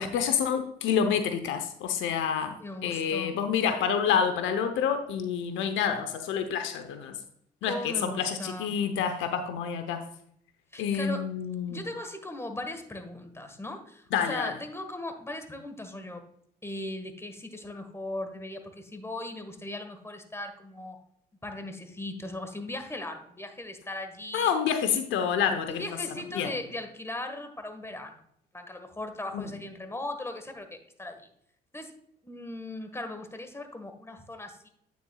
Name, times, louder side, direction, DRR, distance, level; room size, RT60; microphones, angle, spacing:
voice 1, 0.0-7.2 7.6-10.0 10.8-11.8 14.1-14.5 24.3-25.8 26.3-26.5 29.3-29.5, left 7 dB, 70° left, 8 dB, 0.9 m, -28 dB
voice 2, 2.6-3.4 7.6-8.8 10.7-11.3 11.7-16.2 16.6-21.0 21.4-24.5 25.7-28.1 28.5-31.3 31.7-31.9 32.2-34.7, left 2 dB, 10° left, 7 dB, 1.5 m, -38 dB
8.8 x 7.1 x 2.3 m, 0.69 s
supercardioid pair, 65°, 20 cm